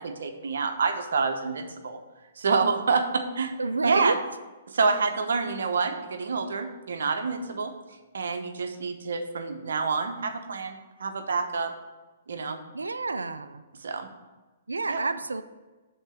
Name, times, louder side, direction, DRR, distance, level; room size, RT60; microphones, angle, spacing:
voice 1, 0.0-2.0 2.4-3.5 3.8-4.2 4.7-7.7 8.1-11.7 12.3-12.6 13.8-14.1 14.9-15.0, right 4 dB, 75° right, 6 dB, 0.9 m, -27 dB
voice 2, 3.6-4.2 12.7-13.6 14.7-15.4, right 3 dB, 90° right, 11 dB, 0.5 m, -28 dB
7.4 x 4.0 x 6.7 m, 1.2 s
hypercardioid pair, 125°, 0 cm